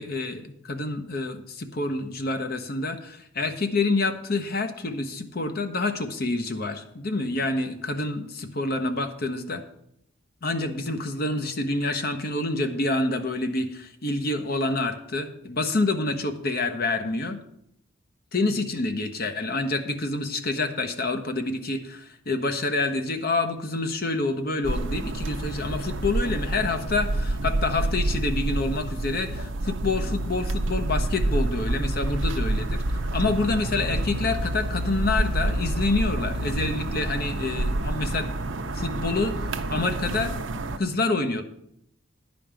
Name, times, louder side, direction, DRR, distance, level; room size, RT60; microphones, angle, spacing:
voice 1, 0.0-9.6 10.4-17.4 18.3-38.3 38.7-40.3 40.8-41.4, left 2 dB, 50° left, 7 dB, 1.0 m, -27 dB
sound 1, 24.6-40.8, right 1 dB, 65° right, 0.7 m, -28 dB
10.0 x 5.3 x 7.5 m, 0.74 s
head